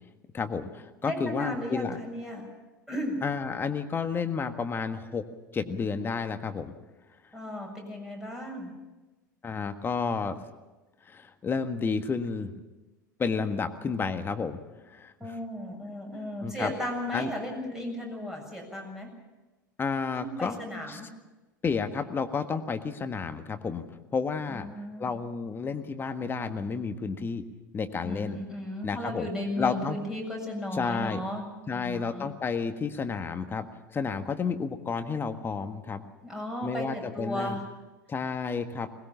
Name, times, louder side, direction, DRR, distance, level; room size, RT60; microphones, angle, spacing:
voice 1, 0.3-2.0 3.2-5.2 5.5-6.7 9.4-10.4 11.1-12.5 13.2-14.6 14.9-15.1 16.4-16.7 17.1-17.3 19.8-20.6 20.9-21.0 21.6-23.8 24.1-24.7 25.0-27.4 27.7-28.4 28.8-29.3 29.6-30.0 30.7-31.2 31.7-33.7 33.9-36.0 36.6-37.6 38.1-38.9, left 5 dB, 20° left, 8 dB, 1.6 m, -31 dB
voice 2, 1.0-2.5 2.9-3.2 7.3-8.8 15.2-19.1 20.2-21.1 24.5-25.1 28.0-32.3 36.2-37.7, left 1 dB, 5° right, 1 dB, 7.2 m, -35 dB
21.5 x 20.0 x 7.2 m, 1.1 s
figure-of-eight pair, 80°, 10 cm